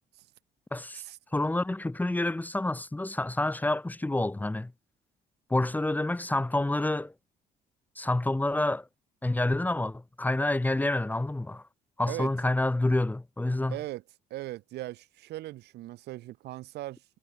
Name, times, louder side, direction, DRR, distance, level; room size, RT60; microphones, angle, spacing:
voice 1, 0.7-1.0 1.3-4.7 5.5-7.1 8.0-8.9 9.2-11.6 12.0-13.8, left 2 dB, 10° left, 2.0 m, -28 dB
voice 2, 13.7-14.0 14.3-17.0, right 16 dB, 75° right, 3.2 m, -39 dB
cardioid pair, 110°, 17 cm